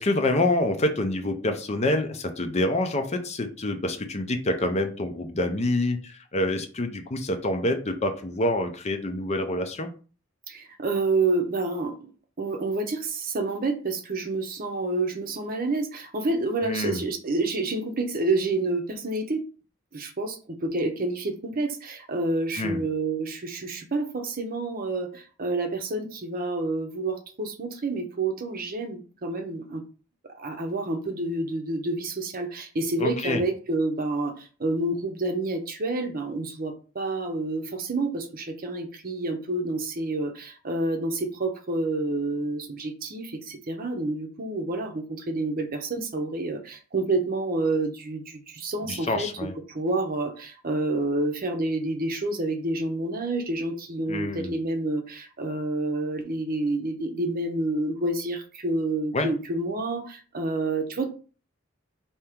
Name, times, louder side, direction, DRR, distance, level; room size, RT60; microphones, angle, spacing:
voice 1, 0.0-9.9 16.6-17.0 22.6-22.8 33.0-33.4 48.9-49.5 54.1-54.5 59.1-59.3, left 1 dB, 35° left, 6 dB, 0.6 m, -27 dB
voice 2, 10.5-12.1 12.4-19.5 19.9-29.8 30.2-61.1, right 2 dB, 45° right, 6 dB, 0.7 m, -28 dB
4.4 x 2.9 x 3.6 m, 0.37 s
head